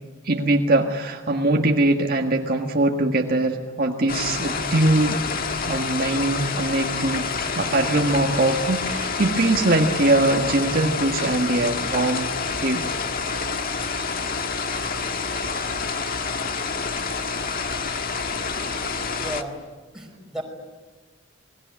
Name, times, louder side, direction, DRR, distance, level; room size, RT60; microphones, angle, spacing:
voice 1, 0.2-5.2 5.7-7.3 7.5-12.3 12.6-12.9, right 2 dB, 50° right, 2 dB, 1.7 m, -22 dB
sound 1, 4.1-19.4, left 4 dB, 45° left, 1.7 m, -28 dB
voice 2, 19.2-19.6 19.9-20.4, equal, 5° right, 0 dB, 5.3 m, -33 dB
28.5 x 21.0 x 9.5 m, 1.3 s
head